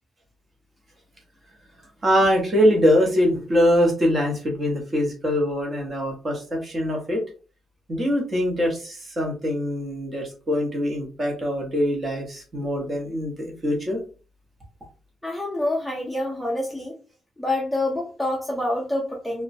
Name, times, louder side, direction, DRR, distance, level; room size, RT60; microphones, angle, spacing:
voice 1, 2.0-7.2 7.9-14.0, equal, 25° right, 1 dB, 0.8 m, -23 dB
voice 2, 15.2-17.0 17.4-19.4, left 1 dB, 5° left, -2 dB, 0.4 m, -27 dB
2.9 x 2.1 x 2.5 m, 0.36 s
wide cardioid pair, 175°, 0 cm